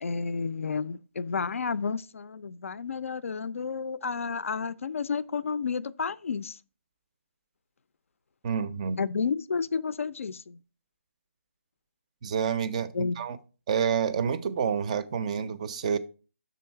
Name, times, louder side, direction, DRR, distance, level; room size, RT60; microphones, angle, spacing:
voice 1, 0.0-6.6 9.0-10.6 12.9-13.2, left 5 dB, 75° left, 0.4 m, -31 dB
voice 2, 8.4-9.0 12.2-13.4 13.7-16.0, right 7 dB, 30° right, 0.4 m, -28 dB
6.2 x 3.9 x 4.4 m
hypercardioid pair, 160°, 7 cm